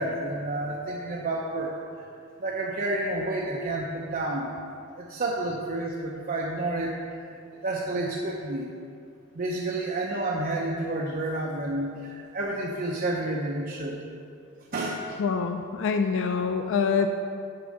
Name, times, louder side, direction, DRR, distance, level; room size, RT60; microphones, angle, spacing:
voice 1, 0.0-2.1 2.4-4.5 5.0-6.9 7.6-8.7 9.3-14.0 14.7-15.0, right 2 dB, 45° right, -2 dB, 0.6 m, -30 dB
voice 2, 15.2-17.1, left 5 dB, 65° left, 6 dB, 0.4 m, -25 dB
6.8 x 4.9 x 6.4 m, 2.4 s
head